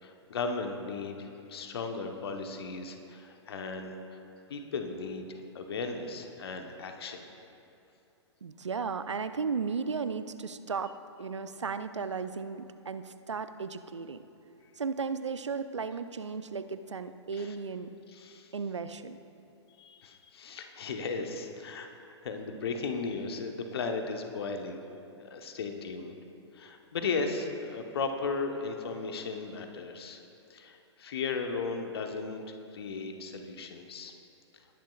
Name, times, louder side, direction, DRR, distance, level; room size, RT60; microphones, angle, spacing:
voice 1, 0.0-4.0 4.5-7.2 17.3-17.6 18.1-18.5 19.8-21.9 22.2-24.8 25.2-26.2 26.5-30.2 30.5-32.5 32.7-34.1, left 4 dB, 55° left, 5 dB, 1.1 m, -36 dB
voice 2, 8.4-14.2 14.8-17.9 18.5-19.2, right 5 dB, 75° right, 11 dB, 0.5 m, -35 dB
19.5 x 10.0 x 2.4 m, 2.8 s
figure-of-eight pair, 110°, 15 cm